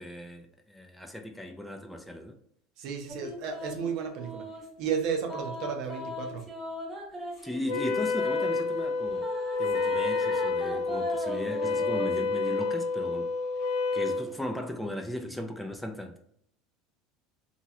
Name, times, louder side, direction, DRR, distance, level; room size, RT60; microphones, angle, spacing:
voice 1, 0.0-2.3 7.4-9.3 9.6-13.3 13.9-16.2, left 1 dB, 5° left, 0.5 m, -37 dB
voice 2, 2.8-4.5 4.8-6.5, right 6 dB, 60° right, 0.7 m, -33 dB
sound 1, 3.1-4.7 5.3-8.5 9.2-12.2, equal, 15° right, 1.3 m, -38 dB
Wind instrument woodwind instrument, 7.7-14.3, left 4 dB, 70° left, 0.5 m, -29 dB
2.9 x 2.9 x 2.3 m
supercardioid pair, 100°, 0 cm